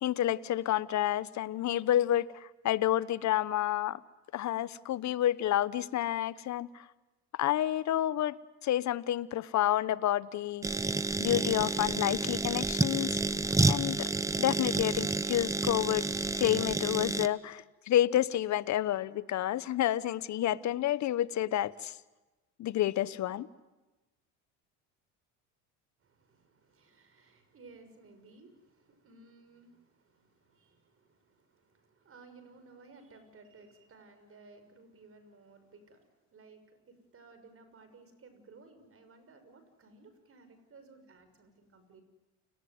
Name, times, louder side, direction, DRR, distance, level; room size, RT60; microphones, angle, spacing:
voice 1, 0.0-4.0 4.3-6.7 7.4-8.4 8.6-10.7 11.2-13.2 13.7-14.1 14.4-16.1 16.4-21.9 22.6-23.5, left 12 dB, 50° left, 17 dB, 1.1 m, -29 dB
sound 1, 10.6-17.3, right 2 dB, 10° right, 1.0 m, -30 dB
voice 2, 26.0-42.0, right 3 dB, 35° right, 9 dB, 6.5 m, -57 dB
29.5 x 19.0 x 9.5 m, 1.1 s
supercardioid pair, 85°, 37 cm